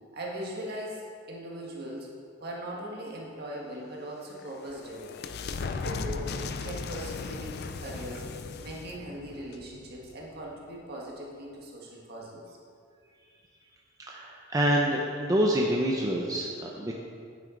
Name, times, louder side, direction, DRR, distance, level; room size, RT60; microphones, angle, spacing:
voice 1, 0.1-1.0 1.3-2.1 2.4-12.6, right 1 dB, 55° right, -3 dB, 1.8 m, -40 dB
sound 1, 4.1-10.5, left 4 dB, 55° left, 0.4 m, -37 dB
voice 2, 14.1-17.0, equal, 20° right, -2 dB, 0.6 m, -27 dB
9.4 x 8.1 x 3.9 m, 2.2 s
head